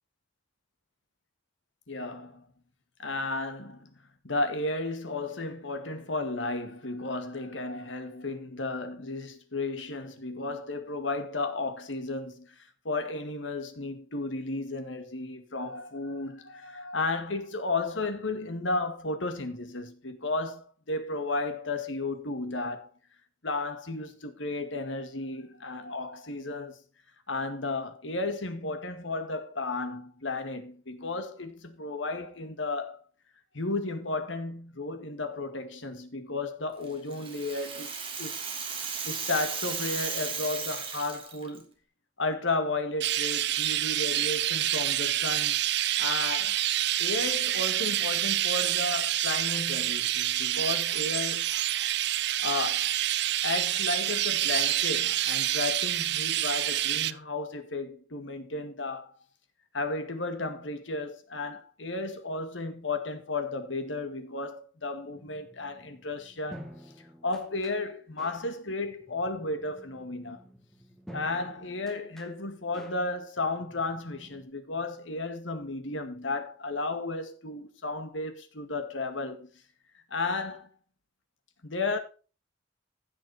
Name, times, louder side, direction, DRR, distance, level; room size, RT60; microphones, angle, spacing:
voice 1, 1.9-2.4 3.0-3.9 4.2-22.9 23.4-26.8 27.3-33.0 33.5-38.4 39.1-41.7 42.2-45.6 46.0-46.6 47.0-51.5 52.4-52.9 53.4-59.1 59.7-66.7 67.2-70.4 71.1-79.5 80.1-80.7 81.6-82.0, left 3 dB, 80° left, 2.0 m, -33 dB
Rattle (instrument), 36.8-41.6, right 6 dB, 30° right, 2.7 m, -35 dB
Chirp tweet, 43.0-57.1, right 13 dB, 60° right, 0.6 m, -27 dB
sound 1, 65.1-74.4, equal, ahead, 2.0 m, -50 dB
15.0 x 6.5 x 4.2 m
head